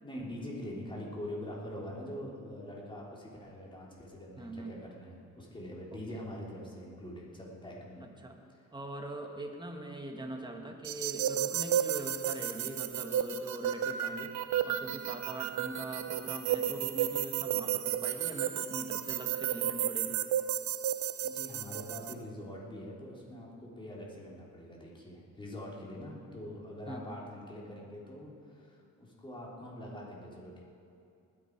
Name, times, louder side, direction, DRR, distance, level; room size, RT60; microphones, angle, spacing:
voice 1, 0.0-8.1 8.5-8.6 21.2-30.6, left 1 dB, 15° left, -4 dB, 3.4 m, -44 dB
voice 2, 4.4-4.8 5.9-6.3 8.2-8.4 8.7-14.3 14.6-20.2 26.9-27.2, right 2 dB, 15° right, 2 dB, 1.8 m, -42 dB
sound 1, 10.8-22.1, right 10 dB, 70° right, 0.6 m, -33 dB
20.0 x 9.0 x 4.7 m, 2.6 s
cardioid pair, 90°, 30 cm